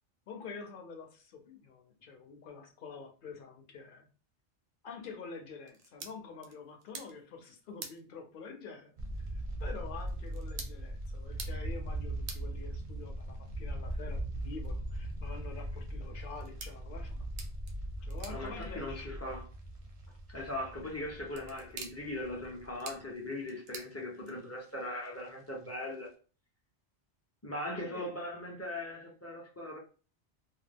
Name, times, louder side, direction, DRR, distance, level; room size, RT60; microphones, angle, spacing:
voice 1, 0.3-4.1 4.8-8.9 9.6-17.4 18.0-19.1 27.8-28.1, left 5 dB, 55° left, 0.7 m, -47 dB
sound 1, 5.6-24.7, right 5 dB, 90° right, 0.9 m, -52 dB
sound 2, 9.0-23.0 23.4-23.5 23.7-23.9 24.8-25.3 25.6-25.7 26.1-26.2, right 1 dB, 45° right, 0.5 m, -40 dB
voice 2, 18.3-19.4 20.3-26.1 27.4-29.8, left 1 dB, 25° left, 0.3 m, -39 dB
2.3 x 2.0 x 3.3 m
omnidirectional pair, 1.2 m